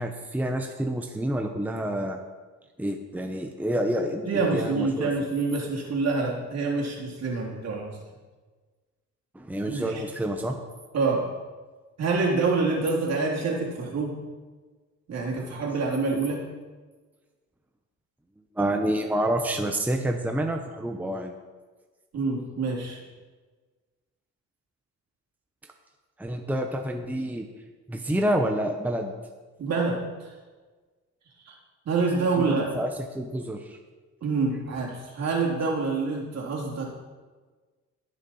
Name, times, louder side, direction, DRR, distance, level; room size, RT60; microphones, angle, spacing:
voice 1, 0.0-2.2 2.8-5.1 9.3-10.6 15.4-15.5 18.6-21.3 26.2-27.5 27.9-29.1 32.4-33.8, right 1 dB, 5° right, 4 dB, 0.9 m, -28 dB
voice 2, 4.3-8.0 9.7-10.0 10.9-11.3 12.0-14.2 15.1-16.4 22.1-23.0 29.6-30.3 31.5-31.6 31.9-32.7 34.2-36.9, right 3 dB, 60° right, -2 dB, 3.3 m, -26 dB
18.5 x 6.6 x 4.3 m, 1.4 s
cardioid pair, 90°, 30 cm